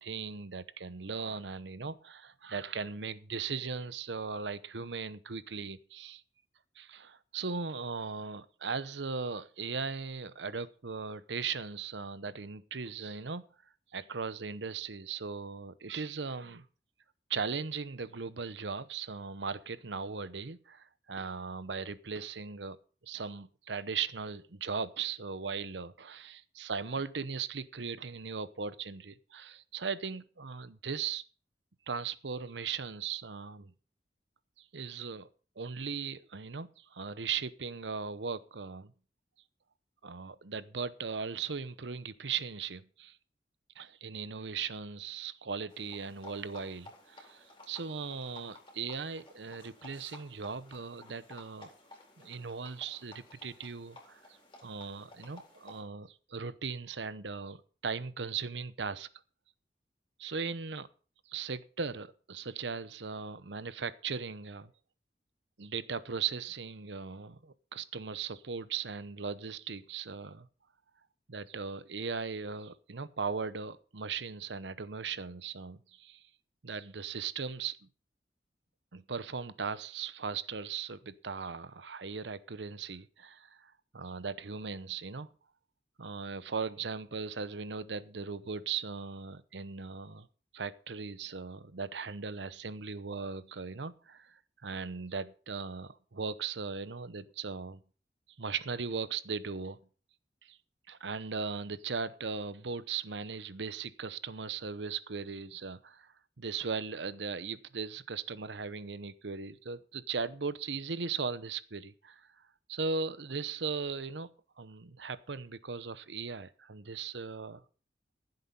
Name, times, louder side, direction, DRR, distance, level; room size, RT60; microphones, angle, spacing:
voice 1, 0.0-6.2 6.8-13.4 13.9-16.6 17.3-22.8 23.0-31.2 31.9-33.7 34.6-35.3 35.6-38.9 40.0-43.2 43.8-51.7 52.2-54.2 54.6-59.1 60.2-60.9 61.3-64.7 65.6-70.5 71.3-76.2 76.6-77.9 78.9-85.3 86.0-90.3 90.5-97.8 98.4-99.8 100.4-100.6 100.9-112.3 112.7-114.3 114.6-117.6, right 5 dB, 85° right, 0.9 m, -38 dB
sound 1, 45.7-55.8, left 2 dB, 30° left, 4.1 m, -55 dB
15.0 x 7.9 x 5.4 m
head